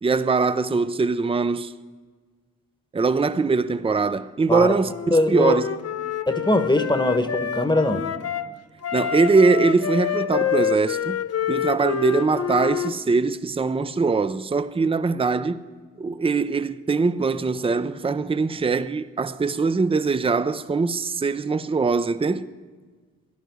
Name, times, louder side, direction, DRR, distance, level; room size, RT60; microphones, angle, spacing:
voice 1, 0.0-1.7 2.9-5.6 8.9-11.2 11.5-15.6 16.0-22.5, right 4 dB, 20° right, 0.6 m, -22 dB
Wind instrument woodwind instrument, 4.8-8.5 8.8-12.9, left 9 dB, 55° left, 0.8 m, -27 dB
voice 2, 5.1-5.6 6.3-8.0, left 1 dB, 15° left, 1.2 m, -21 dB
13.5 x 11.0 x 9.6 m
cardioid pair, 60°, 29 cm